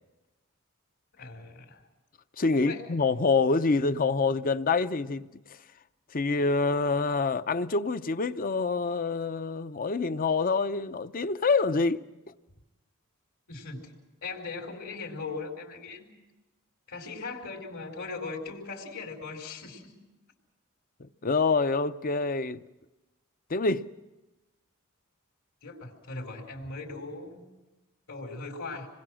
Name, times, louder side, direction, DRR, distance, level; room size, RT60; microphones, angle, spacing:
voice 1, 1.2-1.9 2.5-2.8 13.5-13.9 14.2-16.1 16.9-20.0 25.6-27.4 28.1-28.9, left 3 dB, 75° left, 4.5 m, -39 dB
voice 2, 2.4-5.3 6.1-12.0 21.0-22.6 23.5-23.9, left 4 dB, 40° left, 0.7 m, -26 dB
27.5 x 21.0 x 6.4 m
head